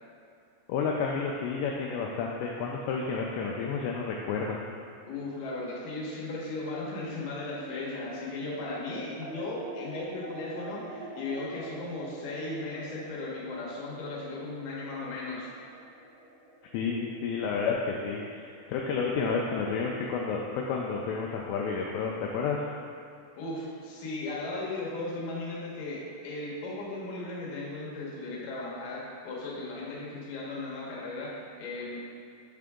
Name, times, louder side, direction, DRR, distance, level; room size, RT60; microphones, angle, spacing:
voice 1, 0.7-4.6 16.7-22.7, left 5 dB, 85° left, -2 dB, 2.5 m, -31 dB
voice 2, 5.1-15.5 23.4-32.0, left 2 dB, 65° left, -6 dB, 2.3 m, -36 dB
sound 1, 6.6-19.2, right 2 dB, 85° right, 3.1 m, -45 dB
7.5 x 3.8 x 3.6 m, 2.5 s
omnidirectional pair, 5.2 m